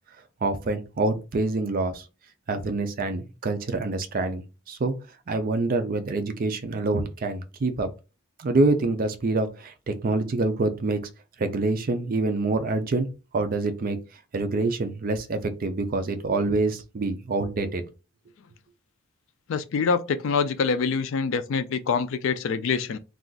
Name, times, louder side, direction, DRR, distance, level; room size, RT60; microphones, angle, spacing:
voice 1, 0.4-2.0 2.5-4.9 5.3-7.9 8.4-11.0 11.4-13.1 13.3-14.0 14.3-17.8, right 2 dB, 40° right, 0.4 m, -26 dB
voice 2, 19.5-23.0, left 5 dB, 60° left, 0.3 m, -25 dB
2.4 x 2.4 x 3.8 m
head